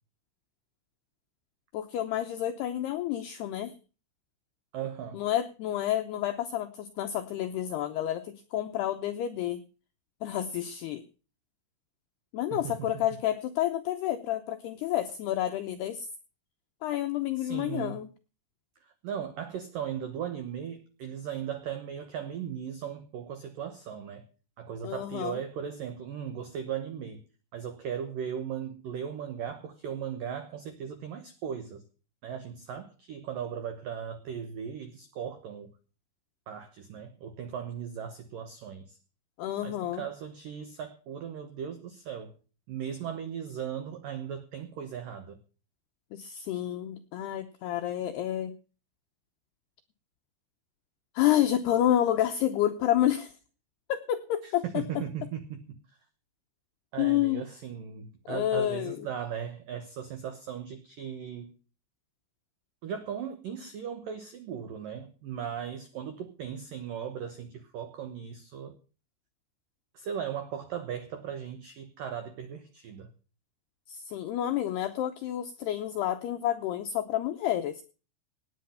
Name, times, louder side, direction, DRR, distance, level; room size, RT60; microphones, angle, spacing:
voice 1, 1.7-3.8 5.1-9.6 10.2-11.0 12.3-16.1 16.8-18.1 24.8-25.4 39.4-40.0 46.1-48.5 51.2-53.4 53.9-54.9 57.0-57.4 58.3-59.0 73.9-77.8, left 12 dB, 85° left, 7 dB, 2.3 m, -29 dB
voice 2, 4.7-5.2 12.5-13.1 17.4-18.0 18.8-24.2 24.6-27.2 27.5-31.8 32.2-35.7 36.5-39.0 39.6-42.4 42.7-45.4 54.4-55.8 56.9-61.5 62.8-68.8 69.9-73.1, right 8 dB, 90° right, 9 dB, 1.9 m, -37 dB
18.5 x 8.6 x 5.6 m, 0.36 s
omnidirectional pair, 5.8 m